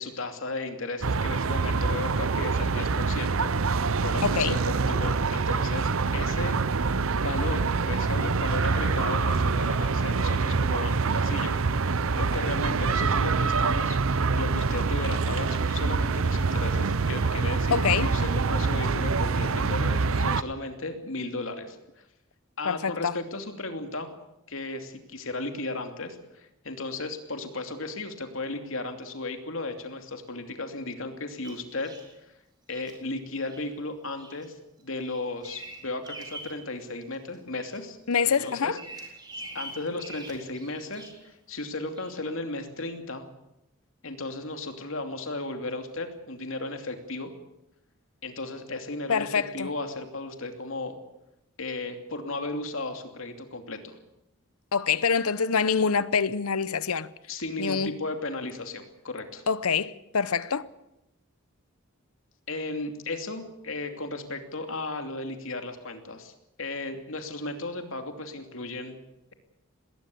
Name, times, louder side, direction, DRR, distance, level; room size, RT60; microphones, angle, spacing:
voice 1, 0.0-3.5 4.0-14.0 14.3-22.0 22.6-24.1 24.5-32.0 32.7-38.0 38.2-38.8 39.5-43.2 44.0-47.3 48.2-51.0 51.6-54.0 57.3-59.4 62.5-66.3 66.6-69.0, left 2 dB, 65° left, 2.8 m, -35 dB
sound 1, 1.0-20.4, right 4 dB, 70° right, 0.7 m, -25 dB
voice 2, 4.2-4.6 17.7-18.1 22.6-23.1 38.1-38.8 49.1-49.7 54.7-57.1 57.6-57.9 59.5-60.7, left 6 dB, 85° left, 0.9 m, -25 dB
Bird vocalization bird call bird song, 31.4-32.1 32.7-33.0 33.5-33.7 34.2-34.5 34.8-36.6 37.0-37.8 38.1-41.3 42.0-42.1, right 2 dB, 20° right, 4.0 m, -44 dB
19.5 x 19.0 x 8.5 m
head